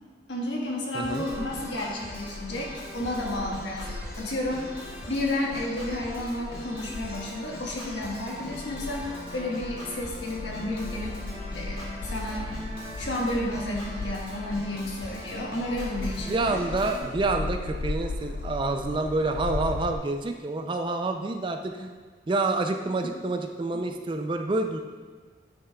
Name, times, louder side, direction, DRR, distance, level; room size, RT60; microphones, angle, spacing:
voice 1, 0.3-4.7 5.1-9.1 9.3-11.2 11.5-12.5 13.0-16.6 23.0-23.1, left 1 dB, 90° left, -2 dB, 1.3 m, -31 dB
voice 2, 0.9-1.3 16.3-22.0 22.3-24.8, right 2 dB, 25° right, 5 dB, 0.4 m, -28 dB
Organ, 1.0-17.0, equal, 30° left, 1.8 m, -41 dB
sound 1, 1.3-20.0, left 2 dB, 60° left, 0.4 m, -38 dB
9.5 x 5.8 x 2.3 m, 1.5 s
head